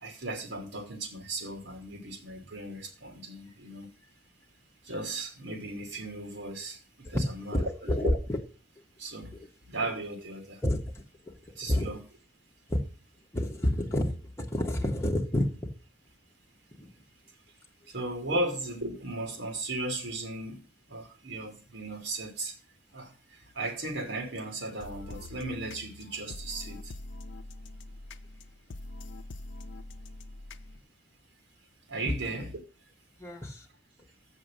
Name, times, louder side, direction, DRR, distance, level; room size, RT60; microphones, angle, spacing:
voice 1, 0.0-3.9 4.8-6.8 7.1-8.1 9.0-9.3 9.7-10.6 11.6-12.0 17.9-20.6 20.9-22.5 22.9-23.1 23.5-26.9 31.9-32.5, right 2 dB, 75° right, 2.5 m, -36 dB
voice 2, 7.1-8.4 9.3-9.5 10.6-10.8 11.2-11.9 12.7-12.8 13.3-15.6 16.8-16.9 33.2-33.7, left 1 dB, 15° left, 1.6 m, -29 dB
sound 1, 24.8-30.8, left 2 dB, 80° left, 0.6 m, -44 dB
7.4 x 6.4 x 7.0 m
head